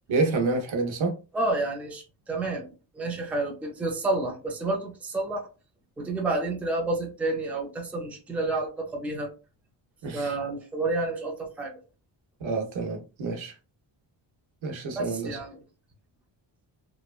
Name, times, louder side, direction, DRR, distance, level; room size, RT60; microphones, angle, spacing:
voice 1, 0.1-1.1 10.0-10.3 12.4-13.5 14.6-15.4, right 3 dB, 80° right, 0.8 m, -28 dB
voice 2, 1.3-5.5 6.0-9.3 10.1-11.8 14.9-15.6, right 2 dB, 5° right, 0.4 m, -30 dB
3.0 x 2.1 x 2.3 m
wide cardioid pair, 175°, 47 cm